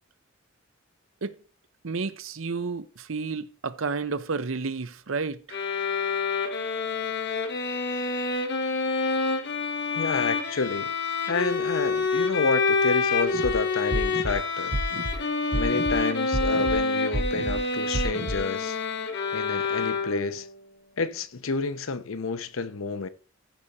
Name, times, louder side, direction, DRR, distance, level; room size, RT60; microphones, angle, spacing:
voice 1, 1.8-5.6, right 4 dB, 75° right, 0.8 m, -31 dB
sound 1, 5.5-20.5, left 4 dB, 60° left, 1.5 m, -27 dB
voice 2, 9.9-10.9 11.3-14.8 15.5-18.8 19.3-20.5 21.0-23.1, left 4 dB, 90° left, 0.8 m, -29 dB
sound 2, 13.3-13.5 13.9-14.3 14.7-15.1 15.5-15.9 16.3-16.8 17.1-17.6 17.9-18.4, right 1 dB, 45° right, 1.0 m, -29 dB
14.5 x 4.9 x 4.2 m
head